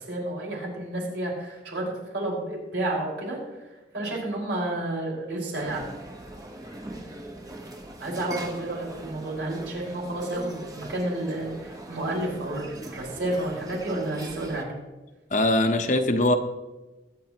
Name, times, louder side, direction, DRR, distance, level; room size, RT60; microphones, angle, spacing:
voice 1, 0.0-5.8 8.0-14.8, right 1 dB, 80° right, -3 dB, 5.1 m, -31 dB
sound 1, 5.5-14.6, right 1 dB, 20° right, 1.1 m, -41 dB
voice 2, 15.3-16.4, left 1 dB, 40° left, 7 dB, 0.9 m, -21 dB
22.5 x 9.2 x 3.0 m, 1.1 s
head